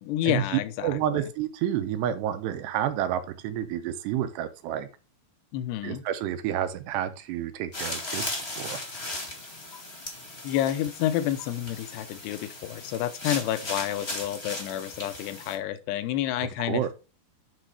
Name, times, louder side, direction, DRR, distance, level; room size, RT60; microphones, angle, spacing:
voice 1, 0.0-1.3 5.5-6.0 10.4-16.9, left 12 dB, 80° left, 11 dB, 2.9 m, -29 dB
voice 2, 0.8-4.9 5.8-8.8 16.6-16.9, right 10 dB, 85° right, 9 dB, 3.0 m, -30 dB
sound 1, 7.7-15.5, left 2 dB, 30° left, 1.1 m, -37 dB
9.2 x 4.1 x 4.9 m, 0.32 s
omnidirectional pair, 4.8 m